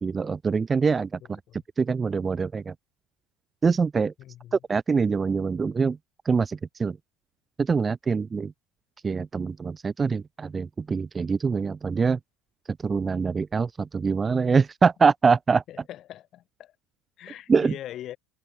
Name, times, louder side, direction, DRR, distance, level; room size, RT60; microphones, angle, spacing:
voice 1, 0.0-1.4 1.8-2.7 3.6-4.1 4.5-6.0 6.3-7.0 7.6-8.5 9.0-12.2 12.7-15.6 17.5-17.7, right 5 dB, 20° right, 0.8 m, -24 dB
voice 2, 4.2-4.6 15.7-16.7 17.2-18.2, left 12 dB, 40° left, 7.6 m, -41 dB
supercardioid pair, 130°, 0 cm